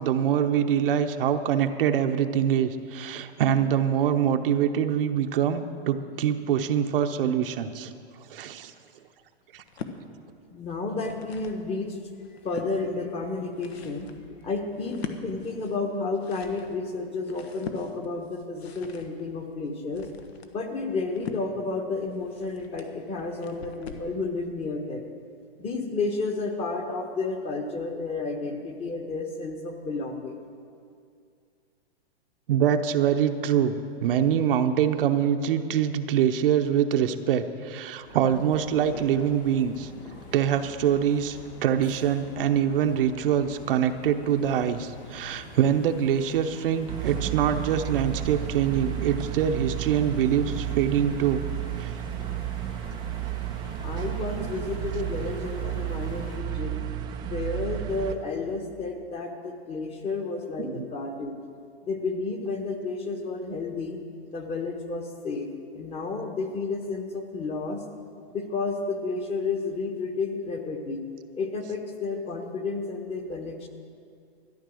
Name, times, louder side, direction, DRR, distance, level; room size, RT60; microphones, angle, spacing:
voice 1, 0.0-7.9 8.3-8.7 9.5-9.6 32.5-39.9 40.3-51.4 51.8-51.9 54.4-54.5 60.6-60.9, right 9 dB, 60° right, 7 dB, 0.8 m, -24 dB
sound 1, 9.5-10.0 10.8-11.6 12.1-12.7 13.3-24.2, left 6 dB, 75° left, 1.3 m, -43 dB
voice 2, 10.5-12.0 12.4-14.1 14.4-20.1 20.5-25.1 25.6-30.4 53.8-56.8 57.2-61.3 61.8-64.0 64.3-65.5 65.7-67.8 68.3-71.0 71.3-73.7, left 3 dB, 20° left, 4 dB, 1.1 m, -31 dB
sound 2, 38.0-56.4, left 2 dB, 55° left, 2.6 m, -46 dB
sound 3, 46.9-58.2, right 12 dB, 15° right, 0.4 m, -32 dB
13.0 x 10.0 x 6.3 m, 2.3 s
hypercardioid pair, 140°, 32 cm